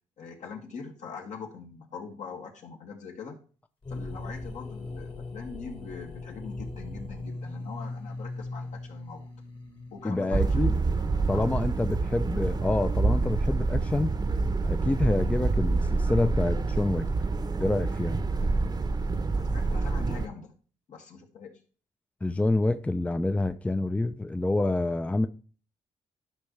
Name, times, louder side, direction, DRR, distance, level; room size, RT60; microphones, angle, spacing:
voice 1, 0.2-3.4 3.9-9.3 9.9-10.5 11.0-11.8 19.4-20.5 20.9-21.5, left 5 dB, 70° left, 2.1 m, -43 dB
sound 1, 3.8-11.6, left 2 dB, 40° left, 1.8 m, -40 dB
voice 2, 10.0-10.8 11.3-14.1 14.6-17.1 17.6-18.2 22.2-25.3, left 2 dB, 10° left, 0.5 m, -27 dB
sound 2, 10.3-20.3, right 3 dB, 30° right, 0.8 m, -27 dB
12.0 x 5.2 x 3.2 m
cardioid pair, 85°, 13 cm